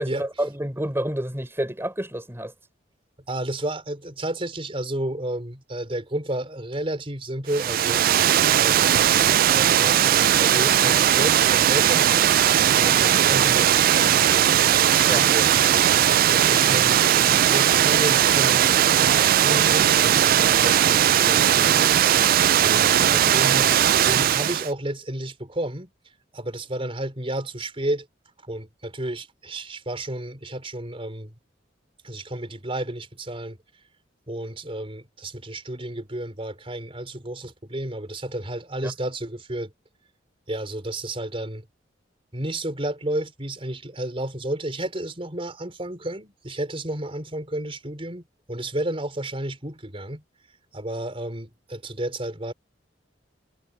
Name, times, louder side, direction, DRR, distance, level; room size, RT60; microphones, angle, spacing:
voice 1, 0.0-2.5 15.1-15.3 23.1-23.3 38.8-38.9, right 1 dB, 15° right, 4.1 m, -29 dB
voice 2, 3.3-10.1 10.4-21.8 22.6-25.9 26.3-28.1 28.5-31.3 32.0-33.6 34.3-39.7 40.5-41.6 42.3-50.2 50.7-52.5, right 1 dB, 30° right, 4.4 m, -32 dB
Water, 7.5-24.7, right 10 dB, 50° right, 0.3 m, -18 dB
head